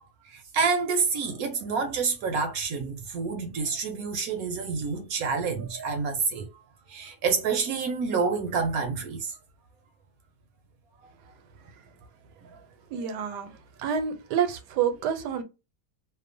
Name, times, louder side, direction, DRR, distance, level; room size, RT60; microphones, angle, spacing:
voice 1, 0.3-6.5 6.9-9.4, right 5 dB, 70° right, 0.9 m, -28 dB
voice 2, 12.9-15.4, right 8 dB, 85° right, 1.2 m, -28 dB
2.8 x 2.0 x 2.5 m
omnidirectional pair, 1.8 m